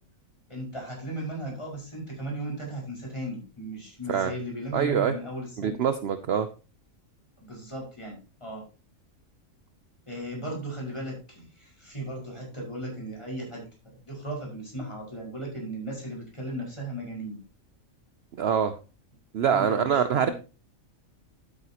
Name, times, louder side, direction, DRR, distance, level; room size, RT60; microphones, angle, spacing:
voice 1, 0.5-5.8 7.4-8.6 10.1-17.4 19.4-20.3, right 1 dB, 20° left, -3 dB, 5.6 m, -36 dB
voice 2, 4.7-5.1 5.6-6.5 18.4-18.7 19.3-20.3, right 8 dB, 55° right, 10 dB, 0.8 m, -24 dB
12.0 x 9.1 x 2.9 m, 0.33 s
omnidirectional pair, 1.4 m